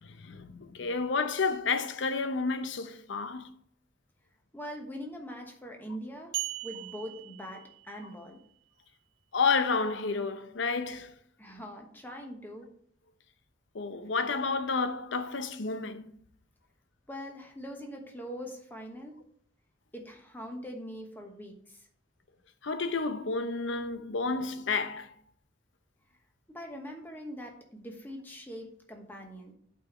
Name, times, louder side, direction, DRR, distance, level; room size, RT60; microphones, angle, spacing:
voice 1, 0.0-3.5 9.3-11.1 13.7-16.1 22.6-25.1, left 4 dB, 70° left, 0.7 m, -30 dB
voice 2, 4.5-8.4 11.4-12.7 17.1-19.2 19.9-21.9 26.5-29.5, equal, 10° left, 1.1 m, -42 dB
sound 1, 6.3-8.2, right 17 dB, 90° right, 1.1 m, -39 dB
8.5 x 4.2 x 4.3 m
head